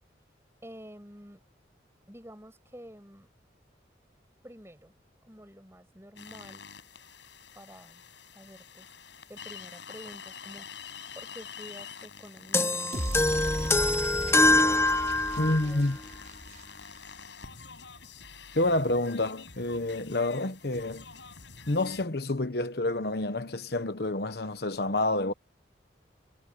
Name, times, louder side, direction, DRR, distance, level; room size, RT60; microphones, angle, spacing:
voice 1, 0.6-1.4 2.1-3.3 4.4-4.9 5.2-6.6 7.5-8.0 8.3-8.9 9.3-10.7 11.1-13.0 13.2-14.5 15.4-16.0 16.5-16.6, equal, 15° right, 6.0 m, -49 dB
sound 1, 6.2-22.0, left 6 dB, 80° left, 6.6 m, -47 dB
sound 2, 12.5-15.7, left 2 dB, 15° left, 0.7 m, -24 dB
sound 3, 12.9-17.2, right 1 dB, 40° right, 5.7 m, -38 dB
voice 2, 15.4-16.0 18.5-21.1 21.7-25.3, left 2 dB, 60° left, 1.1 m, -28 dB
head